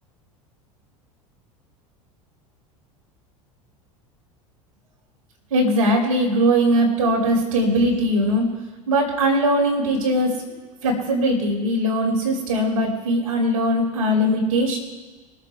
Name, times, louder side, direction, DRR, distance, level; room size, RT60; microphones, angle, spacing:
voice 1, 5.5-8.4 8.9-10.5 10.8-14.8, equal, 70° right, -2 dB, 4.1 m, -20 dB
22.5 x 7.7 x 4.8 m, 1.3 s
figure-of-eight pair, 75°, 19 cm